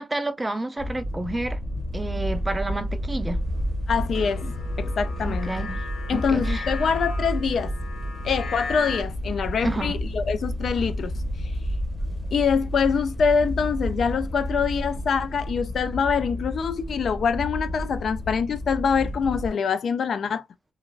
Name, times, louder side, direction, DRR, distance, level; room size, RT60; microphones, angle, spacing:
voice 1, 0.0-1.6 1.9-3.4 5.2-5.8 6.1-6.7 9.6-10.0, right 2 dB, 15° right, 0.4 m, -30 dB
sound 1, 0.8-19.5, equal, 5° left, 0.8 m, -30 dB
voice 2, 3.9-5.5 6.1-7.7 8.2-11.1 11.4-11.5 12.3-20.4, left 6 dB, 55° left, 0.3 m, -25 dB
sound 2, 4.1-9.0, left 4 dB, 90° left, 1.8 m, -37 dB
3.2 x 2.4 x 2.3 m
wide cardioid pair, 160°, 0 cm